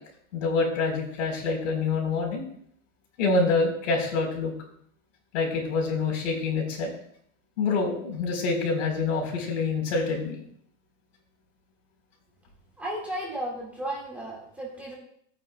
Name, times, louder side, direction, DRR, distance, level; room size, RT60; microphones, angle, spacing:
voice 1, 0.3-2.4 3.2-4.5 5.3-6.9 7.6-10.4, left 3 dB, 70° left, 1 dB, 4.1 m, -26 dB
voice 2, 12.8-15.0, right 1 dB, 5° right, -5 dB, 1.8 m, -34 dB
17.0 x 8.9 x 2.3 m, 0.67 s
supercardioid pair, 180°, 38 cm